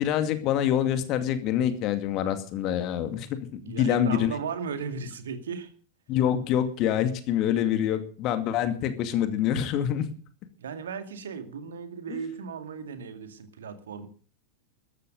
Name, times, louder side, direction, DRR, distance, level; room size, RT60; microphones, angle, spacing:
voice 1, 0.0-4.3 6.1-10.1 12.1-12.2, left 10 dB, 40° left, 9 dB, 2.3 m, -26 dB
voice 2, 3.6-5.7 10.6-14.1, right 6 dB, 65° right, 9 dB, 2.2 m, -36 dB
14.0 x 13.5 x 5.3 m, 0.42 s
figure-of-eight pair, 90°, 0 cm